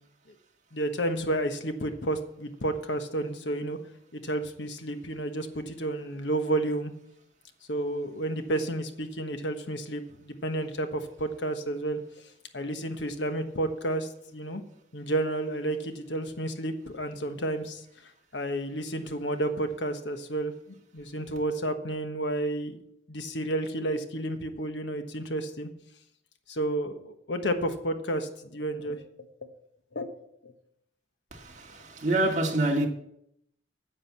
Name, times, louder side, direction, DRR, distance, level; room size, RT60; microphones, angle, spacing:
voice 1, 0.7-3.8 4.1-6.9 7.7-12.0 12.5-14.6 14.9-17.8 18.3-20.5 20.9-22.8 23.1-25.7 26.5-29.0 29.9-30.1 30.4-30.5, right 1 dB, 75° left, 1.3 m, -31 dB
voice 2, 31.3-32.9, right 2 dB, 40° right, 1.8 m, -27 dB
9.9 x 7.6 x 7.3 m
head